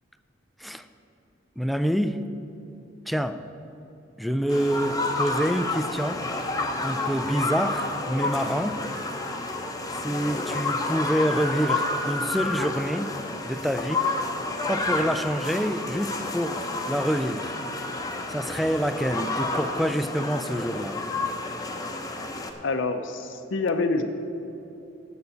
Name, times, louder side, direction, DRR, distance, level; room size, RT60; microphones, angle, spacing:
voice 1, 1.6-2.2 3.1-3.4 4.2-6.2 6.8-8.8 10.0-13.1 13.5-14.0 14.7-17.6 18.3-21.0, equal, ahead, 10 dB, 0.3 m, -27 dB
sound 1, 4.5-22.5, left 2 dB, 20° left, 0.8 m, -30 dB
voice 2, 22.6-24.0, left 3 dB, 70° left, 6 dB, 0.6 m, -26 dB
7.8 x 7.0 x 8.1 m, 2.9 s
head